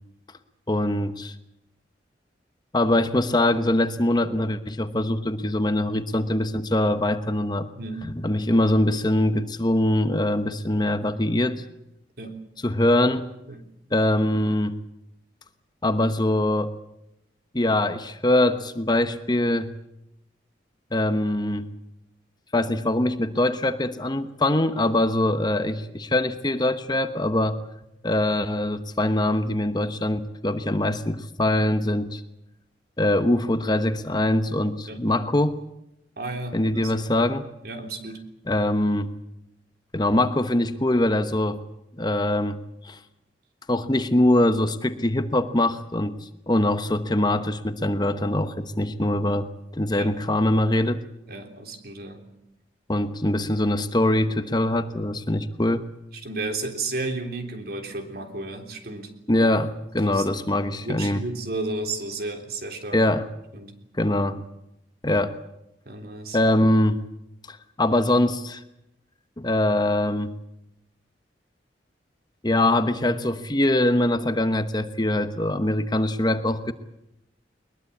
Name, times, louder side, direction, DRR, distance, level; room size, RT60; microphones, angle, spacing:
voice 1, 0.7-1.3 2.7-7.7 8.0-11.6 12.6-13.3 13.9-14.8 15.8-16.7 17.5-19.7 20.9-21.7 22.5-27.6 28.0-32.2 33.0-35.6 36.5-37.5 38.5-39.1 39.9-41.6 42.0-42.6 42.8-43.0 43.7-46.2 46.5-51.0 52.9-55.8 59.3-61.2 62.9-63.3 64.0-64.4 65.0-65.4 66.3-67.0 67.5-68.6 69.4-70.3 72.4-76.7, left 1 dB, 25° left, 10 dB, 1.0 m, -23 dB
voice 2, 7.8-8.2 12.2-12.4 13.5-13.6 34.9-35.1 36.2-36.9 37.6-38.3 50.0-50.1 51.3-52.2 56.2-59.1 60.0-60.3 60.8-63.0 63.5-63.8 65.9-66.4, right 2 dB, 60° right, 5 dB, 3.4 m, -33 dB
22.0 x 21.0 x 8.6 m, 0.84 s
head